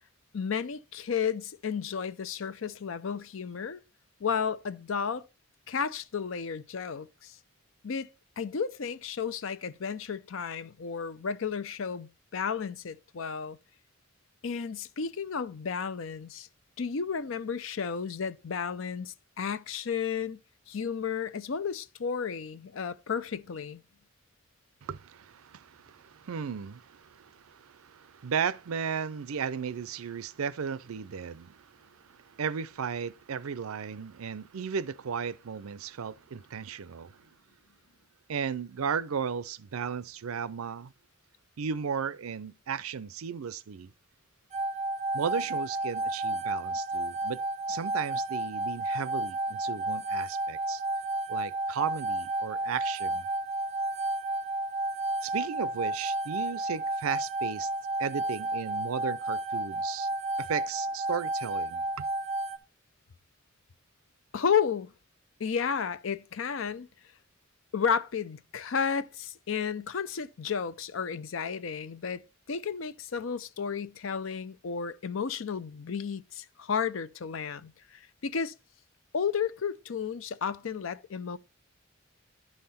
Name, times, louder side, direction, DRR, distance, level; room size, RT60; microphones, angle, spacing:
voice 1, 0.3-3.8 4.2-5.2 5.7-7.4 7.8-8.1 8.4-13.6 14.4-16.5 16.8-20.4 20.7-23.8 64.3-64.9 65.4-66.9 67.7-72.2 72.5-78.5 79.1-81.4, left 6 dB, 65° left, 0.5 m, -32 dB
voice 2, 24.8-37.3 38.3-40.9 41.6-43.9 45.1-47.4 47.7-50.8 51.3-53.3 55.2-57.7 58.0-60.1 60.4-61.8, right 6 dB, 85° right, 0.5 m, -35 dB
sound 1, 44.5-62.6, right 2 dB, 30° right, 0.7 m, -32 dB
11.0 x 5.8 x 4.2 m
head